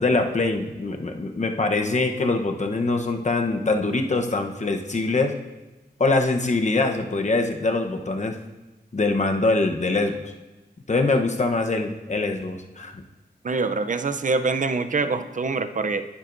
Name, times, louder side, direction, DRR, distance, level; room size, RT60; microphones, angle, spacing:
voice 1, 0.0-5.3 6.0-8.4 8.9-10.3 10.9-13.0, left 3 dB, 45° left, 4 dB, 0.9 m, -23 dB
voice 2, 13.4-16.0, right 4 dB, 50° right, 9 dB, 0.6 m, -24 dB
10.5 x 10.0 x 2.6 m, 1.1 s
cardioid pair, 55°, 17 cm